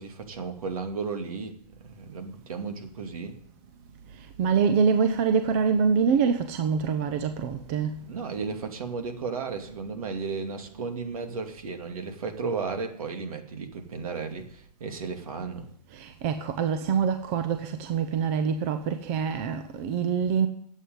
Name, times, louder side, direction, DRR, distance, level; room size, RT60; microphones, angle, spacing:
voice 1, 0.0-1.5 1.8-3.4 8.1-15.7, right 4 dB, 60° right, 2.5 m, -34 dB
voice 2, 4.4-7.9 15.9-20.5, right 6 dB, 20° right, 0.6 m, -25 dB
11.5 x 8.2 x 9.4 m
hypercardioid pair, 165°, 21 cm